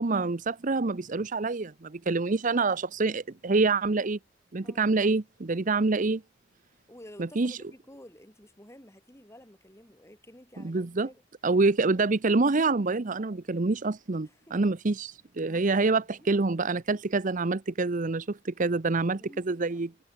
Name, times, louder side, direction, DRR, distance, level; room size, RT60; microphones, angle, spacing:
voice 1, 0.0-4.2 4.5-6.2 7.2-7.6 10.6-11.1 11.4-19.9, right 3 dB, 45° right, 0.7 m, -26 dB
voice 2, 4.6-4.9 5.5-5.8 6.7-11.2 14.2-14.6 15.4-16.3 19.1-19.9, left 1 dB, 15° left, 5.2 m, -52 dB
head